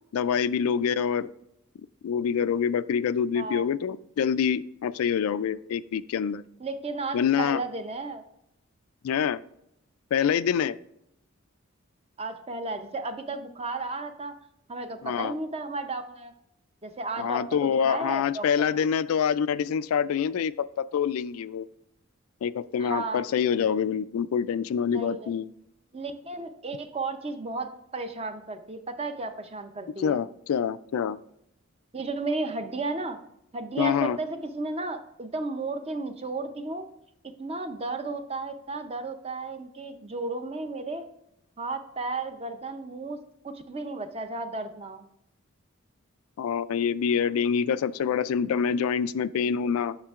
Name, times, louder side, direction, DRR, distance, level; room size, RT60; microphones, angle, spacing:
voice 1, 0.1-1.3 2.0-6.4 7.1-7.6 9.0-9.4 10.1-10.8 15.0-15.3 17.2-21.7 22.4-25.5 30.0-31.2 33.8-34.2 46.4-50.0, left 7 dB, 85° left, 15 dB, 0.3 m, -26 dB
voice 2, 3.4-3.7 6.6-8.2 12.2-14.4 14.7-16.3 16.8-18.5 22.8-23.2 24.9-25.3 25.9-30.2 31.9-33.2 33.5-36.9 37.4-41.1 41.6-45.1, right 3 dB, 30° right, 8 dB, 0.6 m, -34 dB
8.7 x 6.5 x 2.4 m, 0.80 s
head